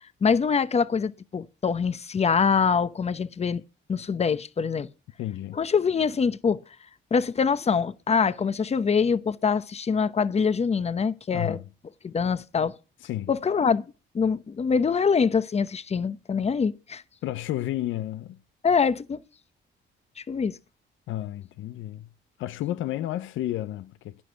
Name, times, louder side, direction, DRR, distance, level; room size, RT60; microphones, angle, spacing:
voice 1, 0.2-3.6 3.9-4.9 5.5-6.6 7.1-11.6 12.0-12.8 13.3-13.9 14.1-17.0 18.6-19.2 20.2-20.6, left 6 dB, 30° left, 0.8 m, -24 dB
voice 2, 5.2-5.6 11.3-11.6 13.0-13.3 17.2-18.4 21.1-22.1 22.4-24.2, left 13 dB, 80° left, 0.6 m, -31 dB
11.5 x 10.0 x 4.6 m
cardioid pair, 90°, 20 cm